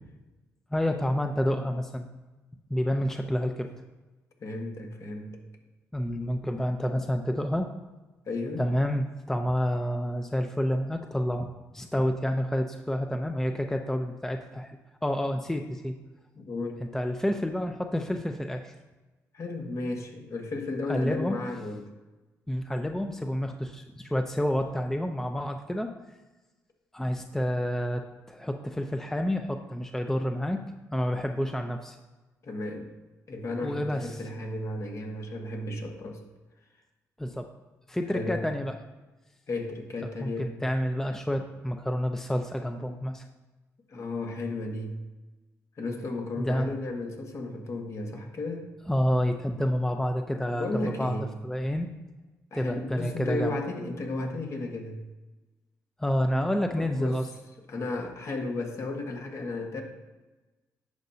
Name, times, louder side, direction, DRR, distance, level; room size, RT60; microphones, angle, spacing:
voice 1, 0.7-2.1 2.7-3.7 5.9-7.7 8.6-16.0 16.8-18.7 20.9-21.4 22.5-25.9 26.9-30.6 30.9-32.0 33.6-34.2 37.2-37.5 37.9-38.7 40.2-43.3 46.4-46.7 48.9-51.9 52.5-53.6 56.0-57.3, equal, 5° left, 5 dB, 0.6 m, -29 dB
voice 2, 4.4-5.4 8.3-8.6 16.3-16.8 19.3-21.9 32.4-32.9 33.3-36.2 38.1-38.5 39.5-40.5 43.9-45.0 45.8-48.7 50.5-51.3 52.5-55.0 56.8-57.2 57.7-59.8, left 2 dB, 50° left, 2 dB, 1.5 m, -34 dB
10.5 x 6.6 x 2.8 m, 1.2 s
cardioid pair, 70°, 6 cm